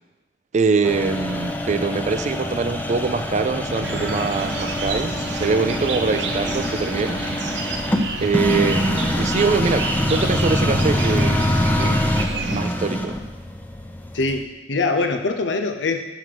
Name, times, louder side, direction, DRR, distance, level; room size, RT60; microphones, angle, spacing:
voice 1, 0.5-7.2 7.7-7.8 8.2-12.0 12.5-13.2, right 4 dB, 40° right, 10 dB, 0.4 m, -23 dB
sound 1, 0.8-14.4, left 1 dB, 10° left, 0.5 m, -24 dB
sound 2, 3.8-12.6, right 3 dB, 70° right, 0.7 m, -30 dB
voice 2, 14.1-16.0, left 3 dB, 90° left, 6 dB, 0.7 m, -23 dB
6.4 x 5.2 x 5.8 m, 1.1 s
head